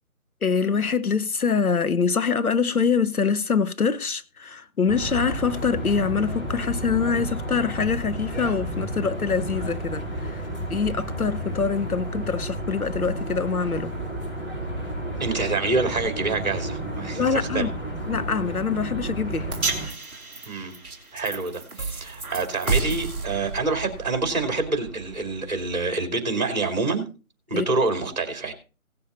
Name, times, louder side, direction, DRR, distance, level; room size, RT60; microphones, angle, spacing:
voice 1, 0.4-10.4 10.7-13.9 17.1-17.7 18.1-19.6 27.5-27.7, left 5 dB, 80° left, 1.1 m, -24 dB
sound 1, 4.9-19.9, right 1 dB, 40° left, 4.4 m, -31 dB
voice 2, 15.2-17.2 17.5-17.7 20.5-20.8 21.1-27.0 27.5-28.5, right 3 dB, 30° right, 2.7 m, -26 dB
sound 2, 19.5-25.9, right 3 dB, 5° right, 1.8 m, -32 dB
17.5 x 6.9 x 4.1 m
figure-of-eight pair, 165°, 43 cm